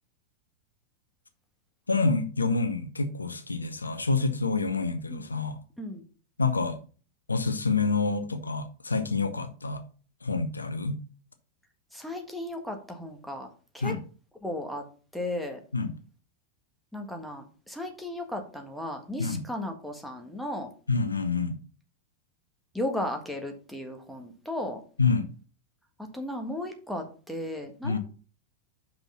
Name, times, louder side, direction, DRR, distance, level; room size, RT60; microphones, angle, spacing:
voice 1, 1.9-5.6 6.4-6.8 7.3-9.8 10.2-11.0 13.8-14.0 15.7-15.9 19.2-19.4 20.9-21.5 25.0-25.3 27.8-28.0, left 4 dB, 80° left, 0.7 m, -27 dB
voice 2, 11.9-13.9 14.4-14.8 15.1-15.6 16.9-20.7 22.7-24.8 26.1-28.0, left 1 dB, ahead, 1.6 m, -35 dB
5.9 x 5.3 x 5.7 m
figure-of-eight pair, 90°, 0 cm